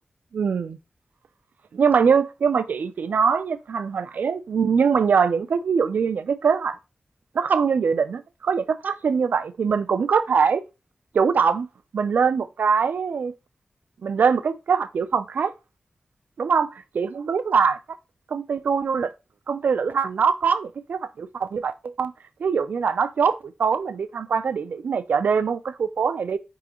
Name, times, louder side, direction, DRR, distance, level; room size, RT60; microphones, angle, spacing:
voice 1, 0.3-0.8 1.7-6.8 7.3-10.6 11.1-11.7 11.9-13.3 14.0-15.5 16.4-17.8 18.3-19.1 19.5-22.1 22.4-26.4, right 6 dB, 85° right, 0.3 m, -22 dB
4.9 x 3.6 x 2.9 m
cardioid pair, 50°, 3 cm